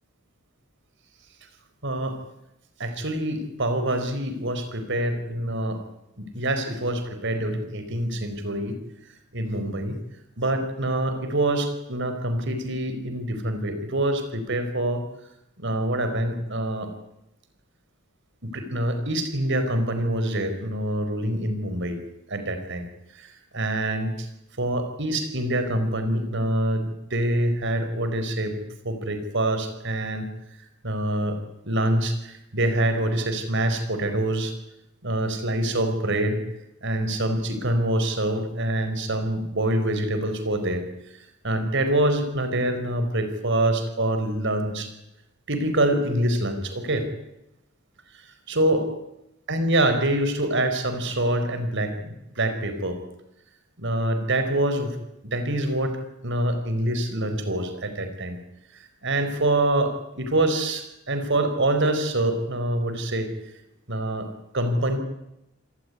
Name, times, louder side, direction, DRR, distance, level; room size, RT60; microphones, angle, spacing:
voice 1, 1.8-2.2 2.8-5.8 6.2-8.8 9.3-10.0 10.4-15.0 15.6-16.9 18.4-22.0 22.3-22.8 23.1-24.3 24.6-30.3 30.8-31.4 31.6-34.5 35.0-36.4 36.8-40.8 41.1-44.9 45.5-47.1 48.1-48.9 49.5-53.0 53.8-55.0 55.2-56.0 56.2-58.4 58.7-63.3 63.9-64.3 64.5-65.0, right 1 dB, 60° right, 8 dB, 4.7 m, -25 dB
27.5 x 18.5 x 9.8 m, 0.88 s
head